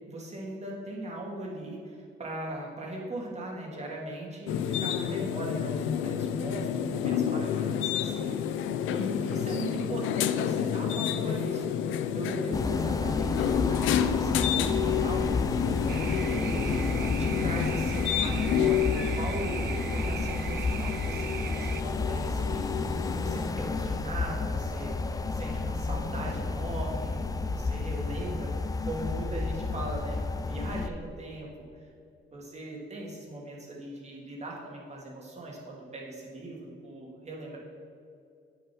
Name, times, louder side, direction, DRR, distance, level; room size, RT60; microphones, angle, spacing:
voice 1, 0.1-15.5 15.9-31.5 32.3-37.6, right 1 dB, 35° right, -2 dB, 2.3 m, -39 dB
sound 1, 4.5-23.5, left 9 dB, 80° left, 0.5 m, -30 dB
sound 2, 12.5-30.9, left 3 dB, 20° left, 0.4 m, -31 dB
sound 3, 15.9-21.8, right 10 dB, 60° right, 0.4 m, -39 dB
8.5 x 6.8 x 4.5 m, 2.5 s
cardioid pair, 90°, 20 cm